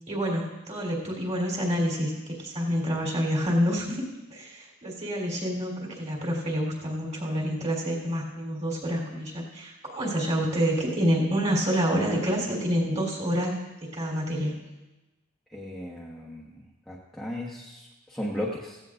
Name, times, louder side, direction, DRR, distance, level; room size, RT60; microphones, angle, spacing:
voice 1, 0.1-4.0 4.3-14.6, equal, 30° right, -1 dB, 3.5 m, -28 dB
voice 2, 15.5-18.8, left 1 dB, ahead, -5 dB, 1.1 m, -36 dB
16.0 x 16.0 x 2.5 m, 1.1 s
head